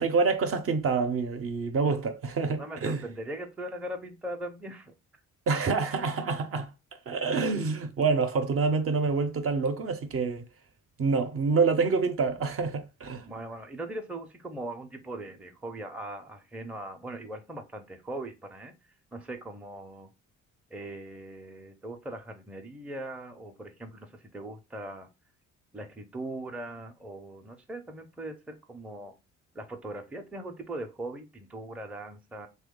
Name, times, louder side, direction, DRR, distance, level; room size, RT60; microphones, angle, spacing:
voice 1, 0.0-3.0 5.5-6.7 7.1-10.5 11.0-13.2, right 4 dB, 50° right, 0.6 m, -27 dB
voice 2, 2.6-4.9 13.2-18.7 19.1-20.1 20.7-25.1 25.7-29.1 29.5-32.5, right 1 dB, 5° right, 0.5 m, -40 dB
2.9 x 2.2 x 3.6 m
cardioid pair, 90°, 30 cm